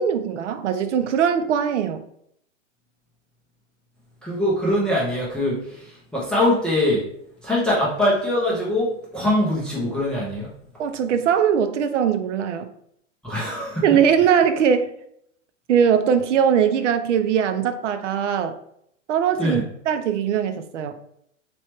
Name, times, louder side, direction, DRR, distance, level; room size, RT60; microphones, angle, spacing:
voice 1, 0.0-2.0 10.8-12.7 13.8-14.9 15.7-18.6 19.1-20.9, right 8 dB, 70° right, 9 dB, 0.5 m, -21 dB
voice 2, 4.2-7.0 7.4-10.5 13.2-13.9 19.4-19.6, left 1 dB, 5° left, -7 dB, 0.4 m, -23 dB
3.2 x 3.0 x 2.9 m, 0.70 s
hypercardioid pair, 125°, 38 cm